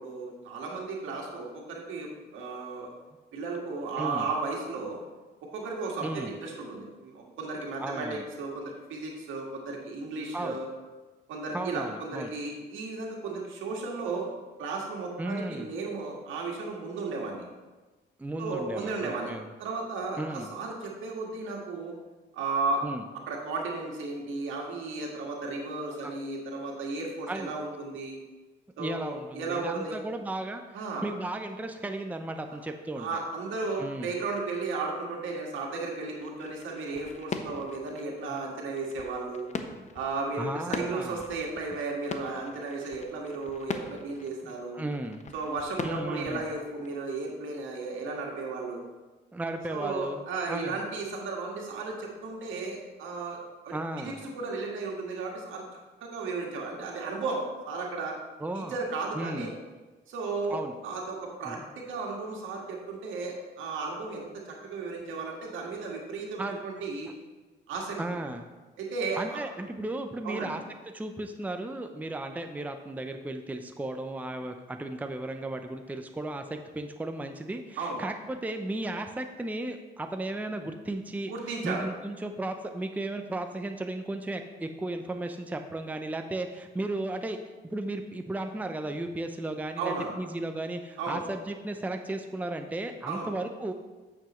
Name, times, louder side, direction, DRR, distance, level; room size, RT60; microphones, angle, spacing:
voice 1, 0.0-2.9 3.3-5.0 5.4-10.7 11.3-14.3 14.6-17.5 18.4-19.3 19.6-21.9 22.3-22.8 23.3-28.2 28.8-30.0 30.7-31.1 32.5-32.6 33.0-39.5 39.9-44.8 45.3-48.9 49.7-53.4 53.6-55.6 56.0-58.2 58.5-59.5 60.1-67.1 67.7-68.0 68.8-69.4 70.2-70.6 77.8-78.0 81.3-81.9 89.8-90.1 91.0-91.2 93.1-93.3, right 3 dB, 80° right, -1 dB, 1.8 m, -34 dB
voice 2, 4.0-4.3 6.0-6.3 7.8-8.2 10.3-10.6 11.5-12.3 15.2-15.7 18.2-19.5 20.2-20.5 22.8-23.0 26.0-26.1 27.3-27.5 28.8-30.6 31.0-33.1 33.8-34.1 38.3-38.4 40.4-41.2 44.7-45.2 45.8-46.4 49.3-50.2 50.5-50.8 53.7-54.2 58.4-58.8 59.1-59.6 60.5-60.7 61.4-61.6 66.4-66.6 68.0-68.5 69.2-70.6 70.9-81.3 81.6-87.4 87.7-93.7, right 2 dB, 10° right, 6 dB, 0.6 m, -35 dB
sound 1, 36.2-46.9, left 4 dB, 35° left, 0.7 m, -41 dB
8.9 x 6.9 x 3.1 m, 1.2 s
cardioid pair, 90°, 20 cm